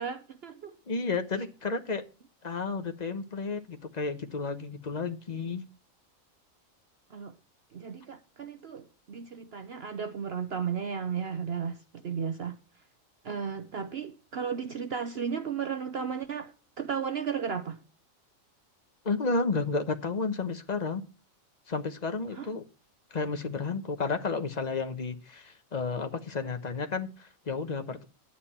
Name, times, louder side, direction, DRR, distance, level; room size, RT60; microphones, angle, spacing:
voice 1, 0.0-0.8 7.1-7.4 7.7-12.6 13.2-17.8 22.3-22.5, right 7 dB, 55° right, 0.9 m, -34 dB
voice 2, 0.9-2.0 2.4-5.6 19.0-21.0 21.7-22.6 23.1-28.1, left 4 dB, 35° left, 1.1 m, -32 dB
11.0 x 8.8 x 4.2 m
omnidirectional pair, 1.4 m